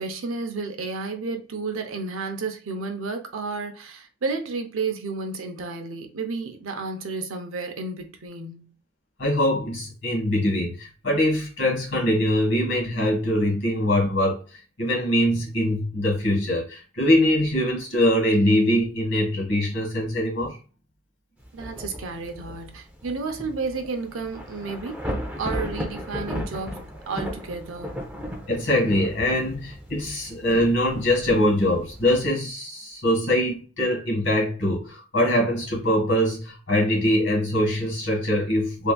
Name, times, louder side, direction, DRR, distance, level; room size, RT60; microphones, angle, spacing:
voice 1, 0.0-8.7 21.5-25.1 25.4-28.0, right 4 dB, 80° right, 0.6 m, -32 dB
voice 2, 9.2-14.4 14.8-20.6 28.5-38.9, left 1 dB, 60° left, 1.7 m, -23 dB
Thunder / Rain, 21.4-32.3, equal, 5° right, 0.5 m, -36 dB
3.4 x 2.7 x 2.3 m
head